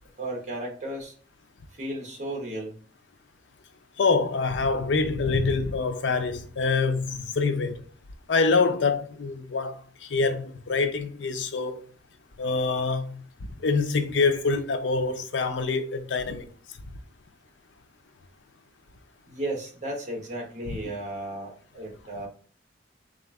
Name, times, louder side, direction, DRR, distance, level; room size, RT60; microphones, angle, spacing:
voice 1, 0.2-1.1 1.8-2.7 19.3-22.3, right 1 dB, 40° right, 1.2 m, -34 dB
voice 2, 4.0-7.8 8.3-11.8 12.4-13.2 13.6-16.5 20.7-20.8, left 4 dB, 85° left, 0.5 m, -25 dB
4.1 x 2.5 x 3.4 m
head